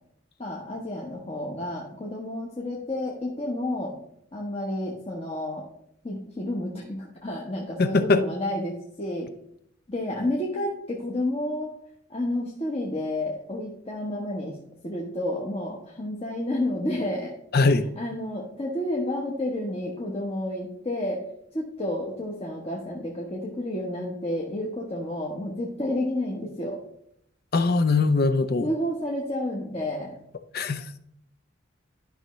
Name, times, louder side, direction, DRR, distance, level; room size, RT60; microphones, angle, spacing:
voice 1, 0.4-3.9 4.3-5.7 6.0-9.3 9.9-11.7 12.1-14.6 14.8-17.3 18.0-21.2 21.5-26.8 28.6-30.1, left 1 dB, 30° left, -2 dB, 1.0 m, -30 dB
voice 2, 7.8-8.2 17.5-17.9 27.5-28.7 30.5-31.0, left 3 dB, 50° left, 10 dB, 0.6 m, -21 dB
11.5 x 5.6 x 3.1 m, 0.73 s
head